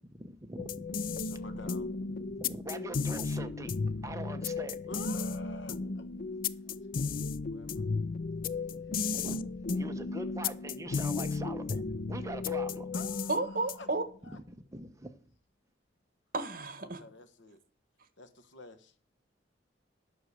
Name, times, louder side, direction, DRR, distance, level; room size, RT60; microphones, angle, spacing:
voice 1, 0.2-0.9 1.6-1.7 2.1-3.7 4.0-4.8 8.7-12.9 14.3-14.4 14.7-14.9, right 2 dB, 15° right, 1.0 m, -43 dB
sound 1, 0.6-14.0, left 4 dB, 50° left, 0.5 m, -34 dB
voice 2, 1.2-1.9 4.9-6.1 7.5-7.8 12.9-13.9 14.2-14.4 16.8-17.6 18.2-18.9, left 2 dB, 90° left, 1.2 m, -49 dB
voice 3, 13.3-14.0 16.3-17.0, right 3 dB, 50° right, 1.5 m, -32 dB
11.0 x 6.3 x 6.6 m
head